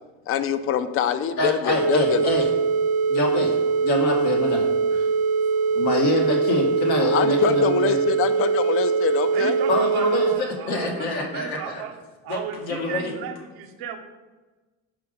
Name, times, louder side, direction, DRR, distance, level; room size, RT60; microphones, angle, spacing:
voice 1, 0.3-2.2 7.0-9.6, left 9 dB, 35° left, 11 dB, 0.4 m, -24 dB
voice 2, 1.4-2.5 3.1-3.6 3.8-5.1 5.7-8.0 9.7-11.8 12.3-13.1, left 2 dB, 80° left, 0 dB, 1.4 m, -26 dB
sound 1, 1.7-10.4, right 5 dB, 40° right, 0.5 m, -22 dB
voice 3, 9.3-11.9 12.2-14.0, right 8 dB, 70° right, 6 dB, 0.8 m, -35 dB
5.7 x 3.8 x 5.0 m, 1.2 s
supercardioid pair, 95°, 39 cm